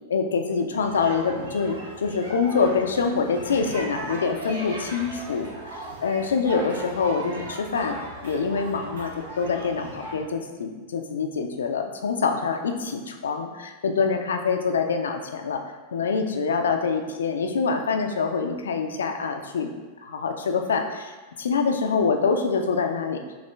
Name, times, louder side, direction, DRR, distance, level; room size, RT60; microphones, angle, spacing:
voice 1, 0.1-5.5 6.0-9.1 9.4-15.6 15.9-19.7 20.0-21.1 21.4-23.2, left 5 dB, 65° left, 4 dB, 0.4 m, -25 dB
sound 1, 0.7-10.2, right 2 dB, 65° right, 0.8 m, -37 dB
5.5 x 2.4 x 3.3 m, 1.3 s
figure-of-eight pair, 90°, 0 cm